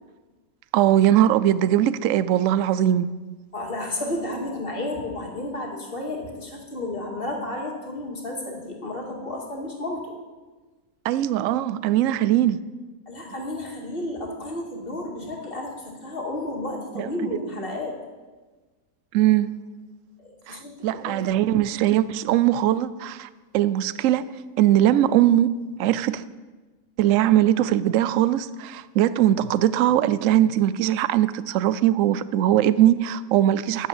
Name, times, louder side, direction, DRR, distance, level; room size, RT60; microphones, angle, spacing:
voice 1, 0.7-3.1 11.0-12.6 17.0-17.1 19.1-19.5 20.5-26.2 27.0-33.9, right 12 dB, 70° right, 16 dB, 0.9 m, -21 dB
voice 2, 3.5-10.2 13.1-18.0 20.2-20.7 21.0-21.2, left 1 dB, 40° left, 0 dB, 2.3 m, -32 dB
9.7 x 9.5 x 7.3 m, 1.3 s
omnidirectional pair, 1.5 m